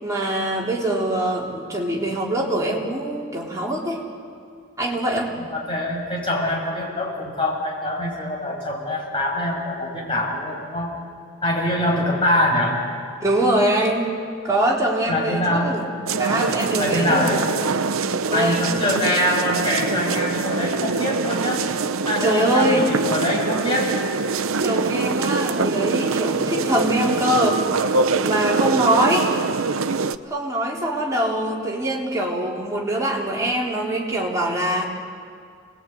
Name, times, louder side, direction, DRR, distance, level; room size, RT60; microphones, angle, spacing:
voice 1, 0.0-4.0 4.8-5.3 13.2-14.0 14.4-15.9 16.2-17.4 18.0-19.0 22.2-22.9 24.6-27.6 28.2-29.3 30.3-34.9, right 1 dB, 15° right, -3 dB, 3.9 m, -23 dB
voice 2, 5.3-11.0 11.4-12.9 15.1-15.8 16.8-17.5 18.3-21.6 22.1-24.0, left 1 dB, 25° left, -2 dB, 7.1 m, -24 dB
sound 1, 16.1-30.1, right 4 dB, 85° right, 0.8 m, -24 dB
29.0 x 21.0 x 9.5 m, 2.2 s
head